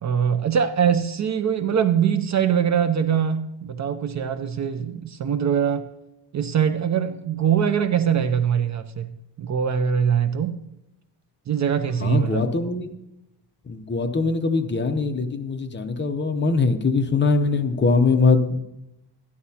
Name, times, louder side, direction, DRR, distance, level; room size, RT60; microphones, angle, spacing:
voice 1, 0.0-5.9 6.3-10.6 11.5-12.4, right 8 dB, 45° right, 10 dB, 0.4 m, -22 dB
voice 2, 12.0-12.9 13.7-18.6, left 4 dB, 25° left, 7 dB, 0.7 m, -22 dB
12.5 x 11.0 x 2.8 m, 0.89 s
wide cardioid pair, 165°, 42 cm